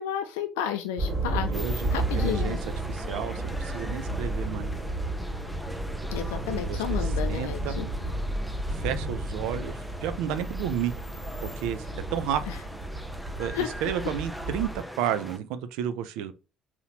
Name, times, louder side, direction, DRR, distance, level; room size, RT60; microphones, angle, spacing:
voice 1, 0.0-1.5 1.9-2.6 6.1-8.1 12.5-12.6 13.5-13.7, left 9 dB, 85° left, 0.4 m, -32 dB
sound 1, 1.0-14.8, right 1 dB, 35° right, 1.9 m, -32 dB
voice 2, 1.4-2.6 2.9-4.7 6.7-7.0 7.2-7.8 8.7-10.9 11.4-11.9 12.1-12.4 13.4-16.3, right 9 dB, 80° right, 0.5 m, -32 dB
sound 2, 1.5-15.4, equal, ahead, 0.8 m, -42 dB
4.0 x 2.9 x 4.1 m
hypercardioid pair, 55°, 0 cm